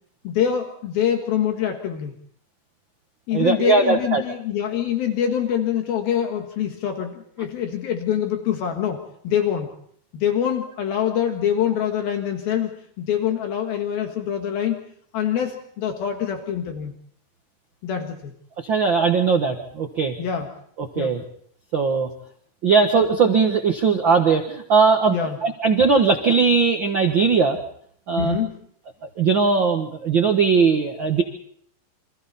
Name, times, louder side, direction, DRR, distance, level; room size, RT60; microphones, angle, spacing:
voice 1, 0.2-2.1 3.3-9.7 10.1-14.8 15.1-16.9 17.8-18.3 20.2-20.5 21.0-21.2 25.1-25.4 28.1-28.6, left 9 dB, 70° left, 4 dB, 3.4 m, -25 dB
voice 2, 3.3-4.2 18.6-20.1 20.9-21.2 21.7-22.1 22.6-25.1 25.4-27.6 28.1-28.4 29.2-31.2, right 5 dB, 80° right, 4 dB, 1.0 m, -19 dB
29.0 x 25.5 x 4.2 m, 0.64 s
omnidirectional pair, 4.5 m